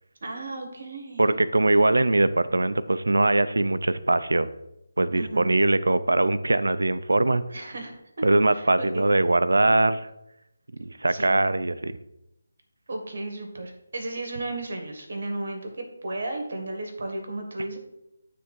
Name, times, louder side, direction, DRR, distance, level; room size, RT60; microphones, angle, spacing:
voice 1, 0.2-1.2 5.1-5.5 7.5-7.9 8.5-9.1 11.1-11.3 12.9-17.8, right 2 dB, 60° right, 4 dB, 1.7 m, -34 dB
voice 2, 1.2-4.5 5.0-7.4 8.2-10.1 10.8-12.0, right 2 dB, 85° right, 14 dB, 0.5 m, -22 dB
9.4 x 3.6 x 4.6 m, 0.86 s
figure-of-eight pair, 160°, 0 cm